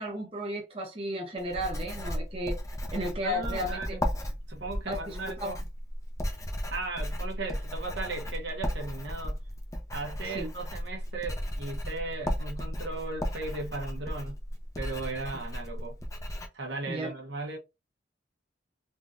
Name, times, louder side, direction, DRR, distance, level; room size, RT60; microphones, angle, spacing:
voice 1, 0.0-2.6 2.9-3.9 4.9-5.5 10.2-10.5 16.9-17.1, equal, 30° right, 0.8 m, -34 dB
Writing, 1.4-16.5, equal, 15° left, 0.6 m, -35 dB
voice 2, 3.2-4.0 4.5-5.6 6.7-9.4 9.9-14.3 14.7-16.0 16.5-17.6, right 3 dB, 70° right, 1.1 m, -37 dB
3.7 x 2.7 x 2.5 m
head